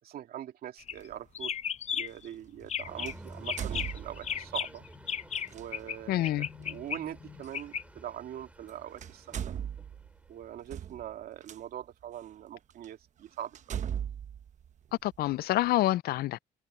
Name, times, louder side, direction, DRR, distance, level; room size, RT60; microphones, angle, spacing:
voice 1, 0.0-1.5 1.9-4.8 5.5-9.5 10.3-13.8, right 11 dB, 65° right, 2.6 m, -42 dB
sound 1, 0.8-1.1 1.4-2.3 2.6-3.1 3.5-6.0 6.2-7.8, left 8 dB, 40° left, 0.9 m, -35 dB
sound 2, 1.0-1.1 3.0-4.5 5.5-5.7 7.5-7.6 8.6-8.7 9.0-11.6 12.2-12.3 12.8-12.9 13.5-15.3, right 9 dB, 45° right, 1.0 m, -38 dB
sound 3, 2.8-10.9, right 1 dB, 10° right, 4.7 m, -52 dB
voice 2, 6.1-6.5 15.0-16.4, left 15 dB, 65° left, 0.5 m, -27 dB
cardioid pair, 110°, 17 cm